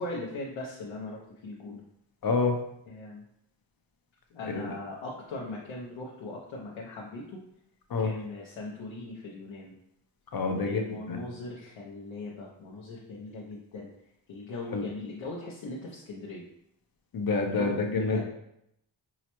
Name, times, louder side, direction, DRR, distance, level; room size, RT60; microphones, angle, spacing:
voice 1, 0.0-1.8 2.9-3.2 4.3-7.4 8.0-9.7 10.6-13.9 14.3-16.4 17.5-18.2, left 2 dB, 90° left, -4 dB, 0.7 m, -39 dB
voice 2, 2.2-2.6 4.5-4.7 7.9-8.1 10.3-10.8 11.1-11.2 14.7-14.8 17.1-18.2, left 4 dB, 50° left, 3 dB, 0.6 m, -27 dB
4.7 x 2.1 x 2.9 m, 0.78 s
wide cardioid pair, 90°, 45 cm